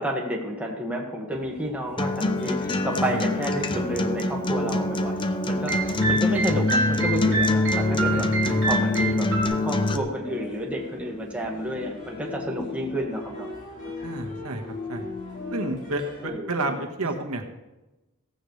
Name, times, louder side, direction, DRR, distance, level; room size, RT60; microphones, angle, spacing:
voice 1, 0.0-8.3 8.7-9.3 9.6-13.5 16.2-16.8, equal, 5° right, -2 dB, 1.8 m, -30 dB
sound 1, 1.3-16.3, left 2 dB, 40° left, 4.2 m, -40 dB
Acoustic guitar, 2.0-10.0, left 2 dB, 20° left, 0.7 m, -25 dB
sound 2, 5.7-9.4, right 3 dB, 55° right, 4.2 m, -27 dB
voice 2, 8.1-8.6 14.0-14.6 14.9-15.0 15.5-17.5, right 2 dB, 85° right, 3 dB, 1.6 m, -30 dB
16.0 x 15.0 x 3.3 m, 1.0 s
head